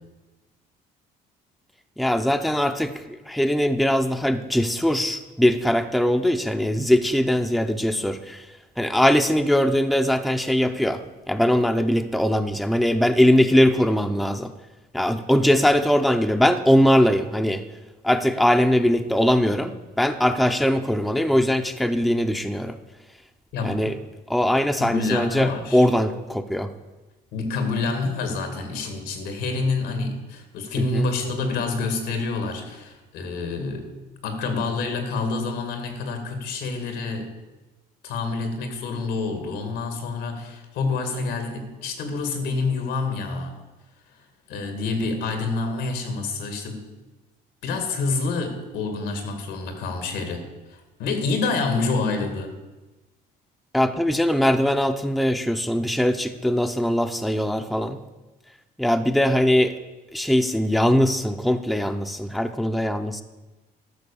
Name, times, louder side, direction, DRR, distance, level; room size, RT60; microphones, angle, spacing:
voice 1, 2.0-8.5 8.8-11.0 11.3-14.5 14.9-17.6 18.0-22.8 23.6-24.0 24.3-26.7 30.9-31.1 53.7-58.0 58.8-59.8 60.1-63.2, equal, ahead, 7 dB, 0.6 m, -21 dB
voice 2, 23.5-23.8 24.8-25.8 27.3-33.9 34.2-37.3 38.0-43.6 44.1-46.8 47.6-50.4 50.7-52.5, left 3 dB, 90° left, 6 dB, 2.3 m, -27 dB
12.5 x 6.5 x 7.0 m, 1.1 s
cardioid pair, 110°, 17 cm